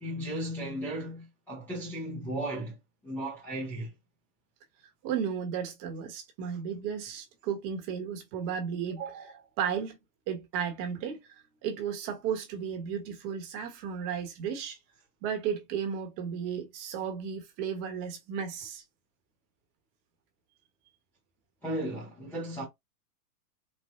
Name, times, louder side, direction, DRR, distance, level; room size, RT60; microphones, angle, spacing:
voice 1, 0.0-2.8 3.0-3.9 21.6-22.6, right 1 dB, 5° left, 0.5 m, -35 dB
voice 2, 5.0-10.0 10.3-11.2 11.6-14.8 15.2-18.8, right 7 dB, 30° right, 1.0 m, -34 dB
4.3 x 2.2 x 2.3 m
hypercardioid pair, 135°, 49 cm